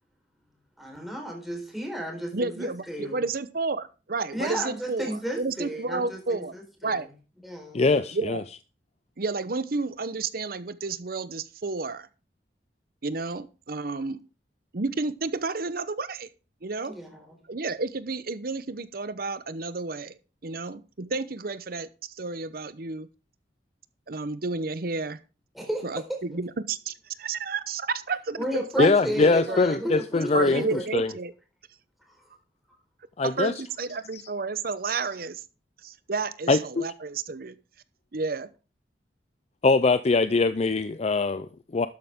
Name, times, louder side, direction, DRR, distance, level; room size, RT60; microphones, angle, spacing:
voice 1, 0.8-3.2 4.3-7.0 7.4-7.8 16.8-17.3 25.5-26.2 28.4-30.8 32.1-32.3, right 1 dB, ahead, 4.2 m, -33 dB
voice 2, 2.3-6.5 6.8-7.1 8.1-8.4 9.2-12.1 13.0-14.2 14.7-16.3 16.6-17.0 17.5-23.1 24.1-25.2 25.8-28.9 29.5-29.6 30.3-31.3 33.2-35.4 35.8-37.6 38.1-38.5, right 4 dB, 55° right, 0.8 m, -31 dB
voice 3, 7.7-8.4 28.8-30.6 30.9-31.1 33.2-33.5 36.5-36.9 39.6-41.9, left 3 dB, 40° left, 0.5 m, -22 dB
12.5 x 9.4 x 3.6 m
head